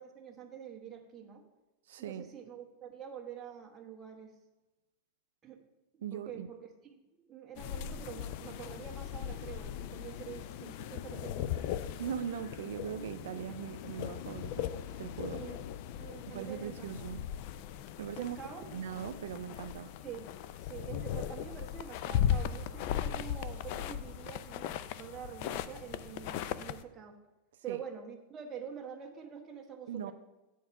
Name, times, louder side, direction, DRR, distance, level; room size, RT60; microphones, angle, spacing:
voice 1, 0.0-1.4 2.0-4.3 5.4-5.6 5.9-6.6 7.2-11.9 15.3-15.6 16.0-16.9 18.2-18.6 20.0-20.3 20.6-27.2 27.6-30.1, right 8 dB, 20° right, 1.3 m, -46 dB
voice 2, 1.9-2.3 6.0-6.5 12.0-15.5 16.3-17.3 18.0-18.4 18.7-19.9 27.7-27.8 29.9-30.1, right 8 dB, 85° right, 0.4 m, -40 dB
sound 1, 7.6-26.8, left 10 dB, 55° left, 0.4 m, -38 dB
9.3 x 4.6 x 6.9 m
supercardioid pair, 145°, 0 cm